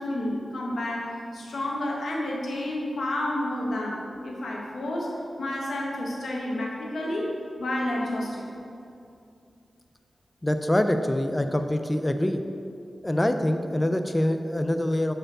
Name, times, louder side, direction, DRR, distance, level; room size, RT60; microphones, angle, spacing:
voice 1, 0.0-7.3 7.6-8.4, left 1 dB, 85° left, -2 dB, 1.1 m, -30 dB
voice 2, 10.4-12.4 13.0-15.1, left 1 dB, 15° left, 7 dB, 0.4 m, -25 dB
5.1 x 4.4 x 6.0 m, 2.6 s
wide cardioid pair, 140°, 0 cm